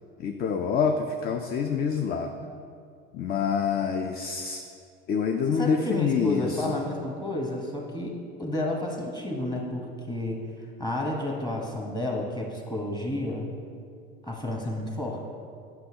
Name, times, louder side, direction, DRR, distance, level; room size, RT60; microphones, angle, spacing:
voice 1, 0.2-2.3 3.1-4.6 5.1-6.6, left 6 dB, 30° left, 5 dB, 0.4 m, -26 dB
voice 2, 5.5-8.1 8.4-10.4 10.8-13.5 14.2-15.2, left 1 dB, 15° left, 0 dB, 1.2 m, -31 dB
7.6 x 5.7 x 2.9 m, 2.3 s
hypercardioid pair, 80°, 30 cm